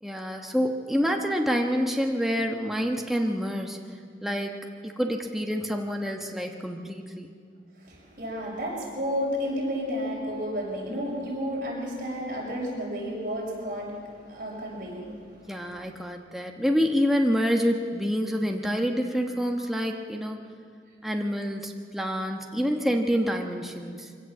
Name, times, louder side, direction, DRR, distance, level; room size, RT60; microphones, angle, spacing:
voice 1, 0.0-3.8 4.2-7.3 15.5-20.4 21.0-24.1, equal, ahead, 2 dB, 1.2 m, -27 dB
voice 2, 7.8-15.3 15.9-16.0, equal, 50° right, -3 dB, 6.5 m, -32 dB
23.5 x 17.0 x 7.5 m, 2.1 s
head